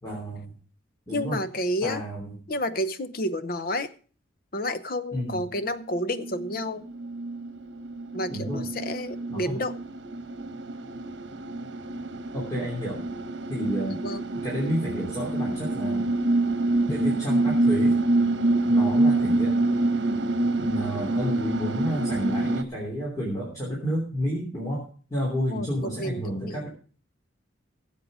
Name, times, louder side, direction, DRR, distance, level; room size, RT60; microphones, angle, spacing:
voice 1, 0.0-0.5 1.1-1.4 1.8-2.4 5.1-5.4 8.3-8.6 9.3-9.6 12.3-13.0 13.5-14.0 14.3-16.1 16.9-18.0 18.7-19.5 20.6-24.8 25.1-26.7, equal, 20° left, -3 dB, 3.1 m, -30 dB
voice 2, 1.1-2.0 2.5-3.9 4.5-6.9 8.1-9.7 14.0-14.2 25.5-25.7 26.0-26.6, left 1 dB, 50° left, 13 dB, 0.8 m, -30 dB
sound 1, 5.9-22.6, right 2 dB, 65° right, 1.1 m, -26 dB
16.0 x 7.7 x 4.9 m, 0.43 s
head